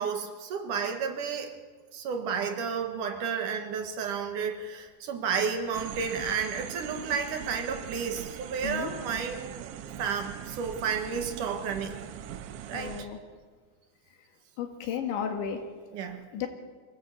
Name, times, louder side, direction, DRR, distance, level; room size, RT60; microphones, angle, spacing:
voice 1, 0.0-1.5 1.9-9.6 10.0-12.0 12.7-13.1 15.9-16.2, right 6 dB, 55° right, 5 dB, 2.6 m, -32 dB
sound 1, 5.7-13.1, right 10 dB, 90° right, 3.2 m, -41 dB
voice 2, 12.7-13.2 14.6-15.6 16.3-16.5, left 8 dB, 85° left, 5 dB, 4.4 m, -33 dB
24.0 x 17.0 x 8.2 m, 1.5 s
omnidirectional pair, 5.1 m